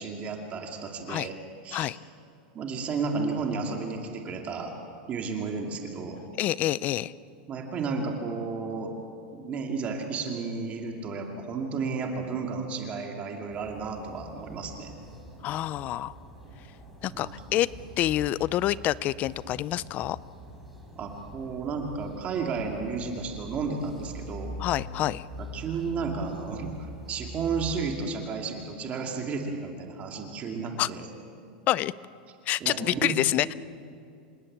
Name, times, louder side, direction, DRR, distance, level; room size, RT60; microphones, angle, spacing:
voice 1, 0.0-1.4 1.6-1.9 2.5-4.7 5.1-6.2 7.5-9.0 9.3-14.9 17.1-17.3 21.0-24.5 25.4-31.1 32.6-33.1, right 4 dB, 25° right, 2 dB, 2.3 m, -32 dB
voice 2, 6.4-7.1 15.4-16.2 17.0-17.7 18.0-20.2 24.6-25.2 30.8-30.9 31.7-31.9 32.5-33.5, left 14 dB, 30° left, 19 dB, 0.5 m, -27 dB
sound 1, 13.5-27.7, equal, ahead, 3.9 m, -44 dB
27.5 x 18.0 x 8.6 m, 2.4 s
supercardioid pair, 155°, 5 cm